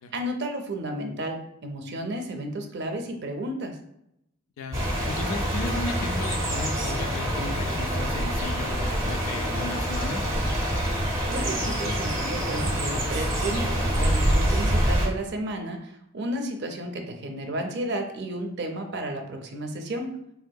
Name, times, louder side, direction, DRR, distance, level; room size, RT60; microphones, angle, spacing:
voice 1, 0.1-3.8 11.3-20.1, right 1 dB, 55° right, 4 dB, 0.5 m, -32 dB
voice 2, 4.6-10.2, left 3 dB, 80° left, 6 dB, 0.4 m, -35 dB
sound 1, 4.7-15.1, equal, 15° right, 0.6 m, -26 dB
3.5 x 2.7 x 2.2 m, 0.79 s
head